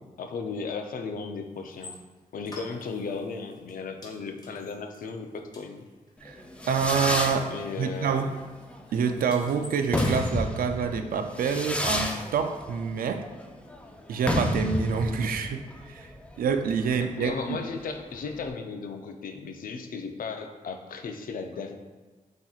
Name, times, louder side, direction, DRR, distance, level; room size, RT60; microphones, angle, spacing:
voice 1, 0.0-2.0 2.3-5.9 7.2-8.3 17.2-21.8, left 4 dB, 75° left, 5 dB, 0.5 m, -36 dB
sound 1, 1.7-2.0 2.5-3.2 3.5-3.7 4.0-6.1 6.4-7.9 8.1-8.3 8.6-10.4, left 2 dB, 30° left, 1.2 m, -44 dB
Fireworks, 6.2-18.5, left 1 dB, 10° left, 0.5 m, -32 dB
voice 2, 6.2-7.5 7.8-8.3 8.9-13.3 14.1-16.1 16.4-17.6, right 6 dB, 80° right, 7 dB, 0.4 m, -27 dB
7.6 x 2.9 x 2.4 m, 1.3 s
cardioid pair, 90°, 15 cm